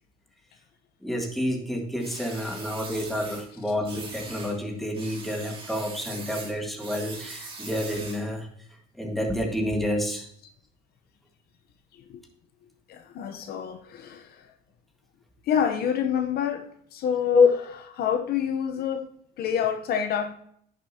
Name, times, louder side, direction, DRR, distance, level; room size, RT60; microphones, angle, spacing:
voice 1, 1.0-8.5 9.0-10.3 17.3-17.5, left 2 dB, ahead, 1.7 m, -28 dB
sound 1, 2.0-3.5 3.8-4.6 4.9-8.3, right 3 dB, 30° right, 2.2 m, -41 dB
voice 2, 12.9-14.5 15.5-17.5 18.0-19.1 19.4-20.3, left 8 dB, 65° left, 0.9 m, -27 dB
10.0 x 6.7 x 2.9 m
cardioid pair, 110°, 17 cm